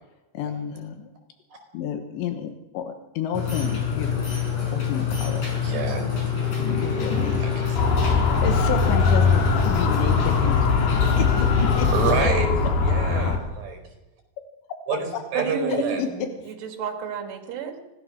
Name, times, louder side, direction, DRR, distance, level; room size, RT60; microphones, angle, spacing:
voice 1, 0.3-1.1 1.7-4.4 4.7-5.5 6.6-7.7 8.2-10.7 11.2-11.9 12.2-12.3 15.3-15.4 15.7-16.3, left 8 dB, 80° left, 7 dB, 3.3 m, -30 dB
sound 1, 3.3-12.2, left 7 dB, 40° left, 6.7 m, -26 dB
voice 2, 5.6-6.3 7.4-7.9 10.4-10.5 11.9-12.5 12.8-13.8 14.9-16.0, right 5 dB, 50° right, 5 dB, 6.2 m, -28 dB
Motor vehicle (road) / Siren, 7.8-13.4, left 4 dB, 60° left, 4.1 m, -21 dB
voice 3, 15.3-17.8, right 6 dB, 70° right, 4 dB, 4.3 m, -31 dB
25.0 x 18.0 x 6.4 m, 1.0 s
omnidirectional pair, 5.1 m